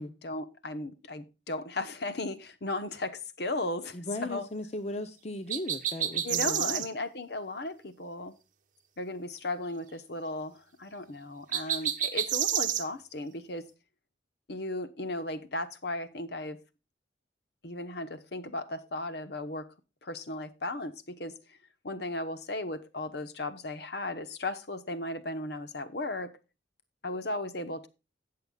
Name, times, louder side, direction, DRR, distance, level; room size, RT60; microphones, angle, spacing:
voice 1, 0.0-4.5 6.2-8.3 9.0-13.7 14.5-16.6 17.6-19.7 20.0-21.6 21.8-26.3 27.0-27.9, left 2 dB, 60° left, 1.0 m, -36 dB
voice 2, 3.9-6.8, left 1 dB, 35° left, 0.7 m, -37 dB
sound 1, 5.5-6.9 11.5-12.8, right 10 dB, 45° right, 0.9 m, -29 dB
17.5 x 6.7 x 2.3 m
head